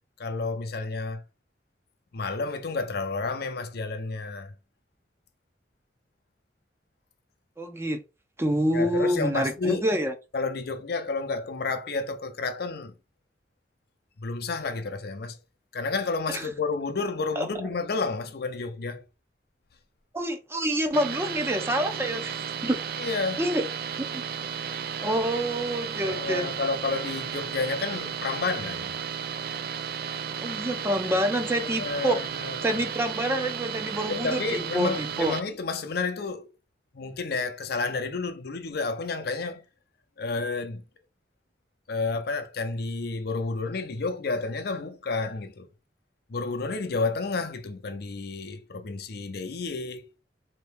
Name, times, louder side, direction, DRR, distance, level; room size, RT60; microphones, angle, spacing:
voice 1, 0.2-1.2 2.1-4.5 8.7-9.8 10.3-13.0 14.2-15.4 15.7-19.0 23.0-23.4 26.0-29.0 31.8-32.8 34.1-36.5 36.9-39.6 40.2-40.8 41.9-45.7 46.3-50.1, left 3 dB, 60° left, 0.6 m, -30 dB
voice 2, 7.6-8.0 8.4-10.1 16.3-16.5 17.4-17.5 20.1-22.8 23.4-23.6 24.1-24.2 25.0-26.5 30.4-32.2 32.6-35.4, right 1 dB, 15° right, 0.6 m, -27 dB
sound 1, 20.9-35.4, right 7 dB, 55° right, 0.4 m, -34 dB
4.0 x 2.8 x 3.5 m
head